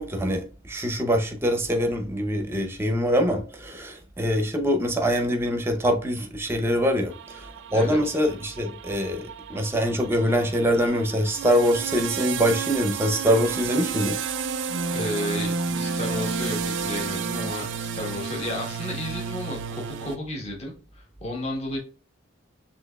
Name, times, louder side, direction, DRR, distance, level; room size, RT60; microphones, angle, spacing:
voice 1, 0.0-14.2, equal, 10° right, 0.6 m, -24 dB
sound 1, 7.1-20.2, right 5 dB, 60° right, 0.4 m, -31 dB
voice 2, 14.9-21.8, left 1 dB, 30° left, 1.2 m, -33 dB
6.1 x 2.9 x 2.2 m
head